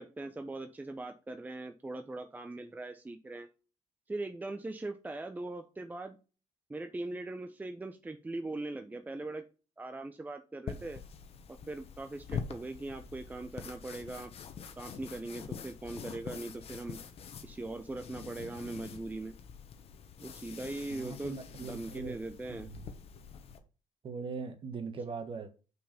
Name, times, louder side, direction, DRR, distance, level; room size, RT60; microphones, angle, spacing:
voice 1, 0.0-3.5 4.1-6.2 6.7-9.5 9.8-11.0 11.5-14.3 14.8-17.0 17.4-19.3 20.2-22.7, right 2 dB, 15° right, 0.7 m, -40 dB
sound 1, 10.7-23.6, left 6 dB, 55° left, 1.2 m, -45 dB
voice 2, 20.9-22.2 22.6-22.9 24.0-25.5, right 4 dB, 45° right, 1.6 m, -40 dB
6.0 x 4.8 x 5.2 m
cardioid pair, 100°, 12 cm